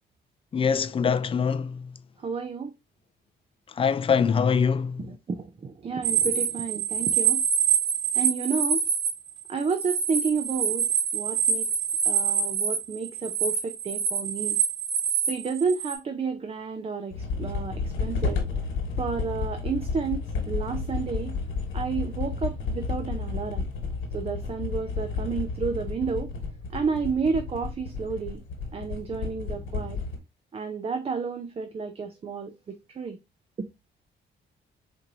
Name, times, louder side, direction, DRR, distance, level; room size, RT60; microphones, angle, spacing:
voice 1, 0.5-1.9 3.8-5.0, left 6 dB, 30° left, 0.4 m, -23 dB
voice 2, 2.2-2.7 5.0-7.4 8.1-8.8 9.5-11.7 12.1-14.6 15.3-18.4 19.0-21.3 21.7-23.7 24.1-26.3 26.7-28.4 28.7-30.0 30.5-33.2 33.6-33.7, right 5 dB, 30° right, 0.5 m, -31 dB
sound 1, 6.0-16.0, right 7 dB, 80° right, 1.4 m, -26 dB
sound 2, 17.1-30.2, left 4 dB, 85° left, 1.4 m, -32 dB
4.4 x 2.7 x 2.7 m
cardioid pair, 90°, 20 cm